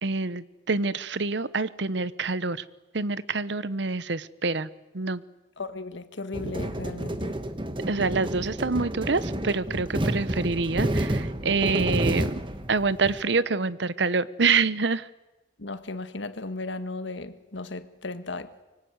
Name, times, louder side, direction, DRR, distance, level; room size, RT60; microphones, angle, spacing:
voice 1, 0.0-2.6 2.9-4.7 4.9-5.2 7.9-12.3 12.7-15.1, right 4 dB, 70° right, 0.9 m, -26 dB
voice 2, 5.6-7.4 15.6-18.6, left 2 dB, 85° left, 1.7 m, -36 dB
sound 1, 6.3-13.2, right 1 dB, 25° right, 1.5 m, -30 dB
24.5 x 24.0 x 9.6 m
head